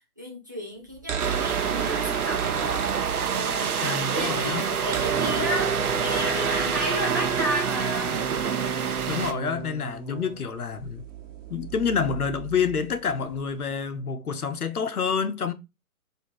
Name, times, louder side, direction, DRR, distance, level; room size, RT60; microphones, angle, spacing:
voice 1, 0.2-2.9 3.3-8.2, left 1 dB, 15° right, 0.3 m, -33 dB
sound 1, 0.9-3.7 3.9-4.0 4.2-13.6, right 6 dB, 60° right, 1.0 m, -33 dB
sound 2, 1.2-9.3, right 7 dB, 80° right, 0.8 m, -27 dB
voice 2, 3.8-4.6 9.1-11.0 11.5-15.5, left 6 dB, 85° left, 0.8 m, -28 dB
4.3 x 2.7 x 4.5 m
figure-of-eight pair, 125°, 44 cm